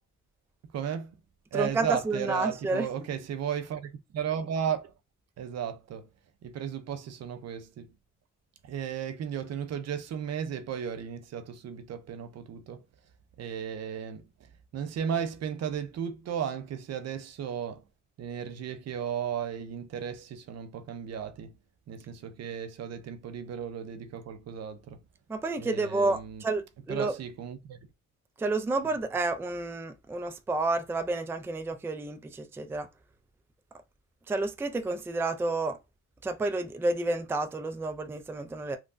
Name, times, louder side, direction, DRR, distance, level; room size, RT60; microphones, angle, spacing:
voice 1, 0.7-1.2 1.5-4.9 5.4-6.1 6.4-7.9 8.6-12.8 13.4-17.8 18.2-21.5 21.9-25.0 25.6-26.4 26.9-27.8, right 8 dB, 60° right, 0.6 m, -35 dB
voice 2, 1.5-2.9 25.3-27.2 28.4-32.9 34.3-35.8 36.2-38.8, right 2 dB, 10° right, 0.4 m, -30 dB
3.6 x 2.2 x 2.5 m
cardioid pair, 90°, 30 cm